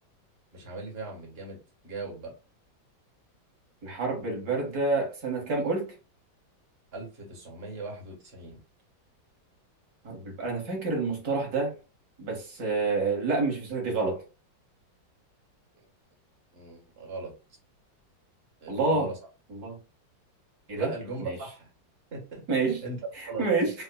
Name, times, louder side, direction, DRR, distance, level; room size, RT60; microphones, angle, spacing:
voice 1, 0.5-2.3 6.9-8.6 16.5-17.3 18.6-19.2 20.7-21.7 22.1-23.0 23.2-23.5, right 3 dB, 35° right, 1.4 m, -39 dB
voice 2, 3.8-5.9 10.0-11.7 12.2-14.2 18.7-19.1 19.5-19.8 20.7-20.9 21.2-21.4 22.5-22.8 23.2-23.7, right 3 dB, 55° right, 1.6 m, -28 dB
5.2 x 2.1 x 2.2 m
omnidirectional pair, 2.1 m